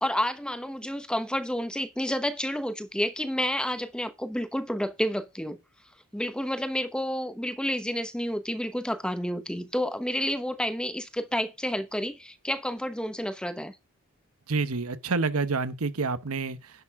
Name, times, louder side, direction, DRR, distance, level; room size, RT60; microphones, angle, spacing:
voice 1, 0.0-5.6 6.1-13.8, equal, 5° left, 0.9 m, -30 dB
voice 2, 14.5-16.8, right 4 dB, 80° right, 1.0 m, -28 dB
10.5 x 6.2 x 4.7 m
head